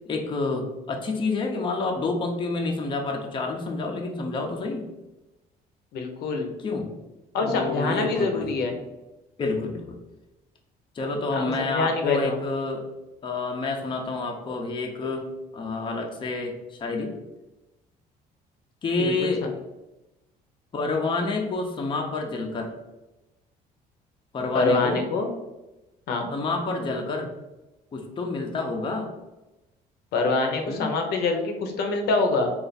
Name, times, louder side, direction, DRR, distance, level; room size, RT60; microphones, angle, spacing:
voice 1, 0.1-4.9 6.6-6.9 7.4-8.6 9.4-10.0 10.9-12.8 13.2-17.1 18.8-19.5 20.7-22.7 24.3-25.1 26.3-27.3 27.9-29.1 30.7-30.9, left 3 dB, 30° left, 1 dB, 0.6 m, -28 dB
voice 2, 5.9-6.5 7.3-8.8 11.3-12.4 19.0-19.3 24.5-25.3 26.1-26.3 30.1-32.5, left 3 dB, 70° left, 3 dB, 0.7 m, -25 dB
3.3 x 2.4 x 3.9 m, 1.0 s
cardioid pair, 110°, 17 cm